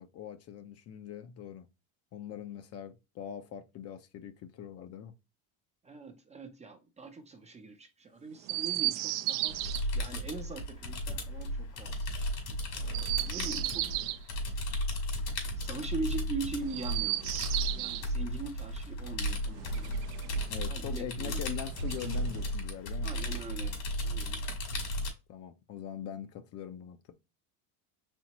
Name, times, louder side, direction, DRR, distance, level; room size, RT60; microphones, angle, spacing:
voice 1, 0.0-1.7 2.1-5.1 20.5-23.1 25.3-27.1, left 9 dB, 40° left, 0.6 m, -42 dB
voice 2, 5.8-12.0 12.7-13.9 15.6-20.0 20.7-21.6 23.0-24.4, right 3 dB, 15° right, 0.5 m, -42 dB
Chirp tweet, 8.4-9.8 12.8-14.2 16.6-18.1 19.5-20.6 21.6-22.6, right 16 dB, 65° right, 0.6 m, -34 dB
sound 1, 9.5-25.1, equal, 80° left, 2.5 m, -35 dB
4.4 x 3.5 x 2.9 m
cardioid pair, 140°, 39 cm